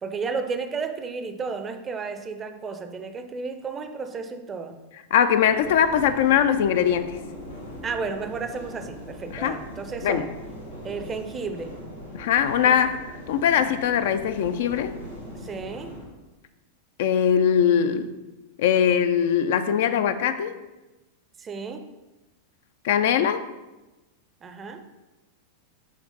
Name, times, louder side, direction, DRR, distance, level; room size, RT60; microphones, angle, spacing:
voice 1, 0.0-4.8 7.8-10.3 10.8-11.7 12.6-12.8 15.4-15.9 21.4-21.8 24.4-24.8, right 4 dB, 20° right, 8 dB, 0.5 m, -32 dB
voice 2, 5.1-7.2 9.3-9.6 10.0-10.2 12.1-12.9 13.3-14.9 17.0-18.1 18.6-20.5 22.8-23.4, left 8 dB, 55° left, 10 dB, 0.3 m, -21 dB
sound 1, 5.5-16.1, equal, 80° left, 2.2 m, -40 dB
6.5 x 3.1 x 5.3 m, 1.1 s
figure-of-eight pair, 90°, 0 cm